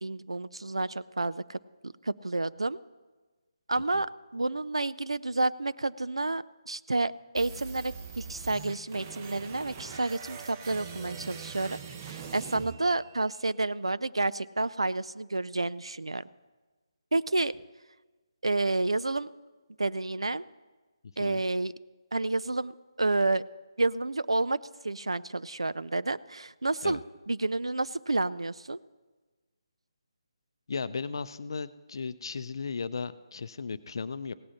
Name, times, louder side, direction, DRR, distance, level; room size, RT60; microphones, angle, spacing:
voice 1, 0.0-2.8 3.7-11.8 12.0-16.2 17.1-17.5 18.4-19.3 19.8-20.4 21.2-21.7 22.1-22.7 23.0-23.4 23.8-24.6 24.8-27.0 27.3-28.8, right 2 dB, 85° right, 17 dB, 0.4 m, -30 dB
sound 1, 7.4-13.4, right 6 dB, 30° right, 0.9 m, -42 dB
voice 2, 30.7-34.3, left 5 dB, 55° left, 14 dB, 0.5 m, -36 dB
17.0 x 8.7 x 5.8 m, 1.3 s
figure-of-eight pair, 150°, 3 cm